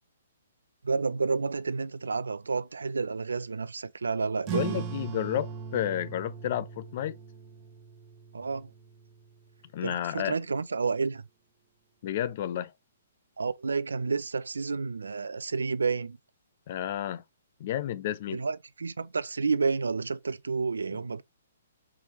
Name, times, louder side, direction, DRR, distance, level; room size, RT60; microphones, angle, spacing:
voice 1, 0.8-4.8 8.3-8.7 9.8-11.2 13.4-16.2 18.3-21.2, right 4 dB, 90° right, 0.4 m, -30 dB
sound 1, 4.4-9.5, right 8 dB, 30° right, 1.1 m, -39 dB
voice 2, 4.5-7.1 9.7-10.3 12.0-12.7 16.7-17.2 17.6-18.4, left 11 dB, 50° left, 0.5 m, -31 dB
4.6 x 3.4 x 2.9 m
hypercardioid pair, 140°, 0 cm